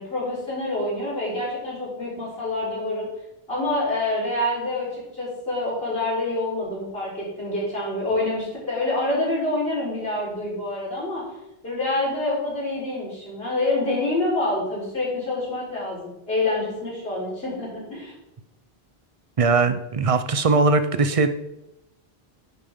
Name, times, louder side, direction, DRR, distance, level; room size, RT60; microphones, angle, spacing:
voice 1, 0.0-3.1 3.5-11.2 11.6-18.1, left 2 dB, 70° left, -7 dB, 4.4 m, -27 dB
voice 2, 19.4-21.3, right 3 dB, 40° right, 10 dB, 0.6 m, -20 dB
10.0 x 8.6 x 3.7 m, 0.90 s
omnidirectional pair, 1.0 m